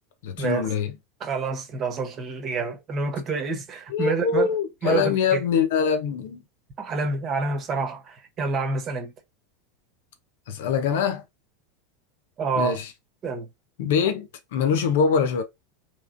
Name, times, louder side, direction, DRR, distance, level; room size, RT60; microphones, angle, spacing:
voice 1, 0.2-0.9 3.9-6.4 10.5-11.2 12.5-12.9 13.8-15.4, left 6 dB, 70° left, 0.8 m, -23 dB
voice 2, 1.2-4.5 4.8-5.4 6.8-9.1 12.4-12.8 13.2-13.5, right 4 dB, 40° right, 1.2 m, -28 dB
3.6 x 3.2 x 2.5 m
hypercardioid pair, 90°, 0 cm